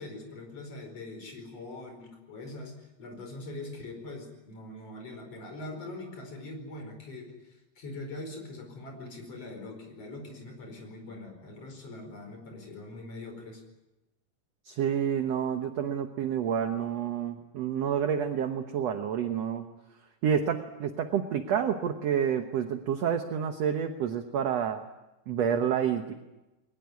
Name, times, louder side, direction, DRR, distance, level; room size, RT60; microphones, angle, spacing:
voice 1, 0.0-13.6, left 2 dB, 45° left, 4 dB, 5.7 m, -42 dB
voice 2, 14.7-19.7 20.2-24.9 25.3-26.1, right 8 dB, 60° right, 7 dB, 1.9 m, -29 dB
22.0 x 20.0 x 9.5 m, 1.0 s
omnidirectional pair, 3.9 m